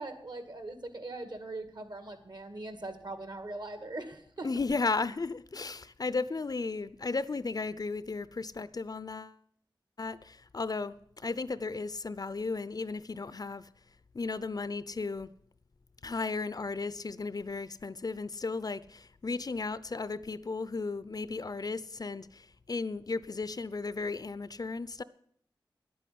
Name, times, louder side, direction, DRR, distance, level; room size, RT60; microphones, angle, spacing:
voice 1, 0.0-4.5, right 2 dB, 55° right, 2.0 m, -41 dB
voice 2, 4.4-9.4 10.0-13.7 14.1-15.3 16.0-25.0, left 3 dB, 50° left, 0.6 m, -35 dB
10.5 x 8.6 x 9.4 m
wide cardioid pair, 60°, 9 cm